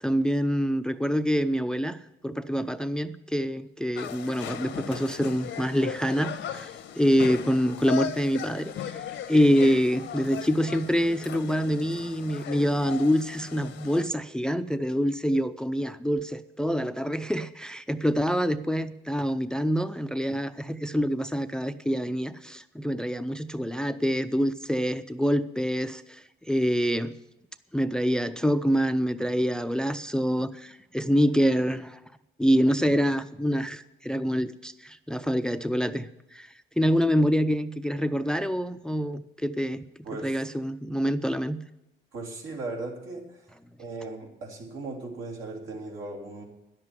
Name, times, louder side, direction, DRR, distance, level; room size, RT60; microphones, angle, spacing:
voice 1, 0.0-2.0 2.2-8.9 9.3-27.1 27.7-32.0 32.4-36.5 36.8-39.8 40.2-41.6, equal, 5° left, 12 dB, 0.5 m, -26 dB
sound 1, 4.0-14.1, left 9 dB, 70° left, 1.0 m, -37 dB
voice 2, 40.0-40.4 42.1-43.5 43.8-46.4, right 3 dB, 80° right, 0 dB, 3.1 m, -37 dB
10.5 x 7.7 x 9.5 m, 0.91 s
cardioid pair, 90°, 20 cm